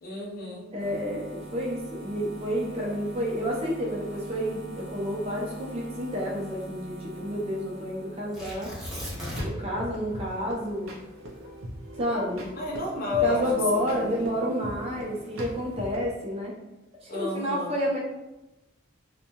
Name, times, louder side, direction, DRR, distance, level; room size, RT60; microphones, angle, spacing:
voice 1, 0.0-0.7 12.6-13.4 13.9-14.0 17.1-17.7, left 3 dB, 45° left, -3 dB, 0.6 m, -30 dB
voice 2, 0.7-8.7 9.4-10.9 11.9-12.5 13.2-16.5 17.0-18.0, equal, 30° right, -3 dB, 0.6 m, -30 dB
sound 1, 0.8-12.0 12.3-16.0, right 1 dB, 80° left, 0.8 m, -45 dB
Tearing, 8.3-9.7 10.0-10.1 10.7-13.0 13.7-14.2, left 1 dB, 5° right, 0.9 m, -37 dB
sound 2, 9.0-16.0, equal, 75° right, 0.6 m, -40 dB
2.6 x 2.2 x 2.9 m, 0.99 s
head